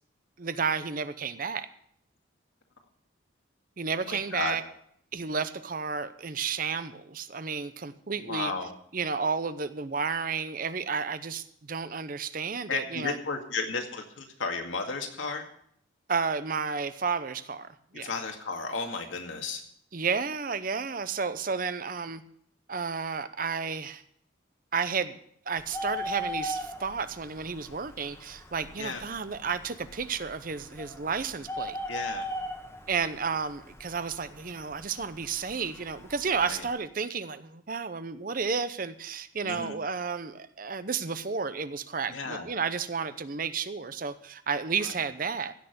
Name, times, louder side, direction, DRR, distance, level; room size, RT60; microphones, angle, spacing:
voice 1, 0.4-1.7 3.8-4.6 5.1-8.5 8.9-13.2 16.1-18.1 19.9-22.2 22.7-24.0 24.7-25.2 25.5-31.8 32.9-45.5, right 5 dB, 45° right, 13 dB, 0.7 m, -32 dB
voice 2, 4.0-4.6 8.2-8.7 12.7-15.5 17.9-19.6 28.8-29.0 31.9-32.3 36.4-36.6 39.4-39.8 42.1-42.5 44.8-44.9, left 4 dB, 80° left, 3 dB, 2.1 m, -33 dB
Bird, 25.6-36.7, equal, 15° left, 1.3 m, -40 dB
16.0 x 6.6 x 8.0 m, 0.69 s
head